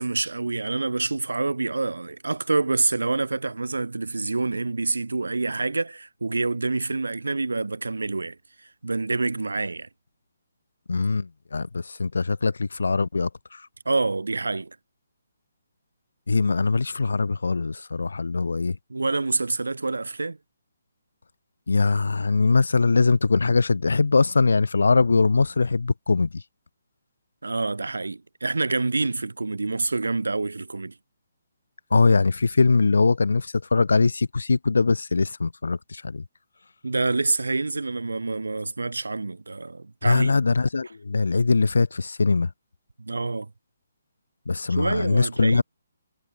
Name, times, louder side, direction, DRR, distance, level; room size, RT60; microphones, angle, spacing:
voice 1, 0.0-8.4 8.8-9.9 13.9-14.8 18.9-20.4 27.4-30.9 36.8-40.4 43.0-43.5 44.7-45.6, right 3 dB, 80° right, 0.8 m, -27 dB
voice 2, 10.9-13.6 16.3-18.8 21.7-26.3 31.9-36.2 40.0-42.5 44.5-45.6, left 4 dB, 75° left, 1.4 m, -22 dB
figure-of-eight pair, 145°, 0 cm